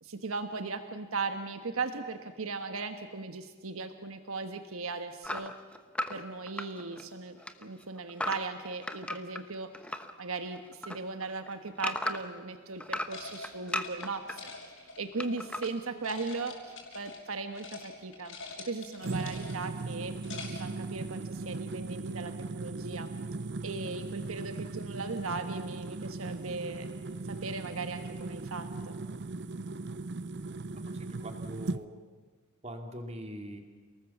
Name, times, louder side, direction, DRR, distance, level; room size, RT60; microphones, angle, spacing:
voice 1, 0.0-5.5 6.1-9.7 10.2-18.4 18.7-20.1 20.5-23.1 23.6-26.9 27.2-29.0, right 4 dB, 85° right, 7 dB, 1.3 m, -38 dB
sound 1, 5.2-10.1 10.5-12.4 12.8-14.4 15.2-15.7, left 1 dB, 5° left, 0.9 m, -36 dB
sound 2, 13.1-15.7 16.0-17.3 17.5-17.9 18.1-19.7 20.1-20.7, left 3 dB, 65° left, 5.7 m, -45 dB
sound 3, 19.0-31.8, right 3 dB, 55° right, 0.6 m, -38 dB
voice 2, 30.9-31.9 32.6-33.6, equal, 30° right, 4 dB, 2.5 m, -42 dB
29.0 x 19.0 x 7.2 m, 1.5 s
head